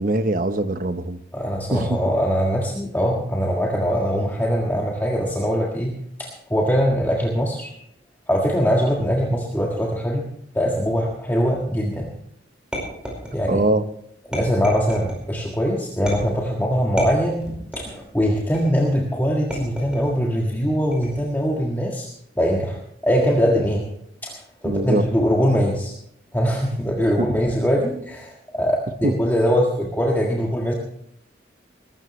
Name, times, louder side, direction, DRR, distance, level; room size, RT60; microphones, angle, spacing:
voice 1, 0.0-1.2 1.7-1.9 13.5-13.9 24.6-25.0 27.2-27.3 29.0-29.1, right 2 dB, 50° right, 10 dB, 0.9 m, -22 dB
voice 2, 1.3-7.7 8.3-10.3 10.5-12.1 13.3-13.7 14.3-17.5 17.8-22.1 22.4-22.8 23.0-23.8 24.2-25.9 26.3-30.7, equal, 10° left, -2 dB, 1.7 m, -22 dB
sound 1, 12.7-13.7 14.3-15.2 16.1-16.5 17.0-18.0 18.5-18.9 19.5-20.2 20.9-21.4, equal, 5° right, 4.9 m, -32 dB
21.5 x 13.0 x 3.2 m, 0.73 s
head